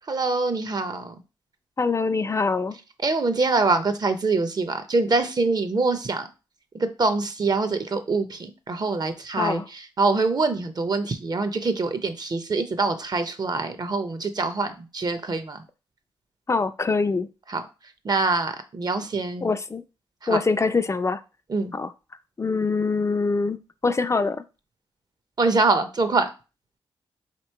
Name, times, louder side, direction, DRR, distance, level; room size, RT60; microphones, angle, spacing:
voice 1, 0.1-1.1 3.0-6.3 6.7-15.6 17.5-17.6 18.0-19.5 20.2-20.4 21.5-21.7 25.4-26.3, right 3 dB, 40° right, 10 dB, 0.6 m, -24 dB
voice 2, 1.8-2.8 9.4-9.6 16.5-17.3 19.4-19.8 20.3-21.2 21.7-21.9 22.4-23.6 23.8-24.4, left 4 dB, 30° left, 11 dB, 0.3 m, -24 dB
3.0 x 2.8 x 4.4 m, 0.31 s
cardioid pair, 60°, 10 cm